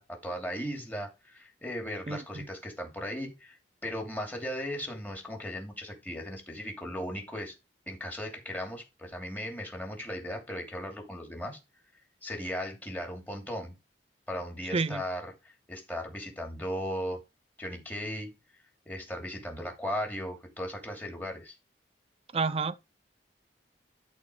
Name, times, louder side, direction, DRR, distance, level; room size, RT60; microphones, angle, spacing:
voice 1, 0.0-7.6 7.9-11.6 12.2-13.8 14.3-17.2 17.6-18.3 18.9-21.6, equal, 10° left, 2.6 m, -37 dB
voice 2, 2.1-2.5 14.7-15.0 22.3-22.8, right 4 dB, 35° right, 0.5 m, -30 dB
12.5 x 4.3 x 4.9 m
head